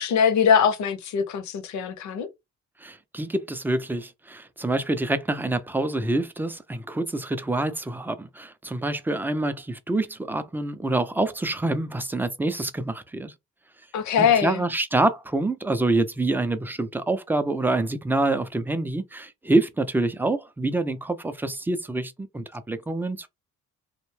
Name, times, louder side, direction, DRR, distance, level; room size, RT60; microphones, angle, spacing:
voice 1, 0.0-2.3 13.9-14.6, left 7 dB, 70° left, 0.7 m, -22 dB
voice 2, 2.8-13.3 14.2-23.3, right 2 dB, 5° right, 0.4 m, -26 dB
2.6 x 2.1 x 3.1 m
cardioid pair, 90°, 30 cm